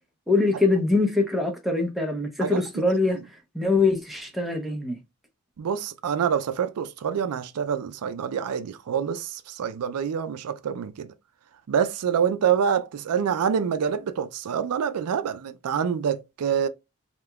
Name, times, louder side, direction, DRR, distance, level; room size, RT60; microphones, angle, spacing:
voice 1, 0.3-3.2 3.5-5.0, left 3 dB, ahead, 0.6 m, -23 dB
voice 2, 5.6-11.1 11.7-16.7, right 7 dB, 85° right, 0.4 m, -26 dB
3.4 x 2.8 x 2.2 m
head